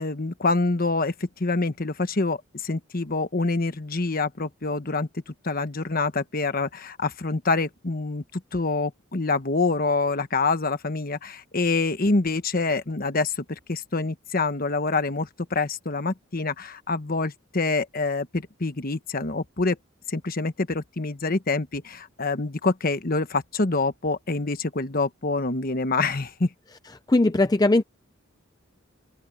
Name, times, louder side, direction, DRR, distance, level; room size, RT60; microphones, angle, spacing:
voice 1, 0.0-19.8 20.1-26.5, left 3 dB, 45° left, 1.2 m, -26 dB
voice 2, 27.1-27.8, left 2 dB, 20° left, 0.5 m, -19 dB
open air
head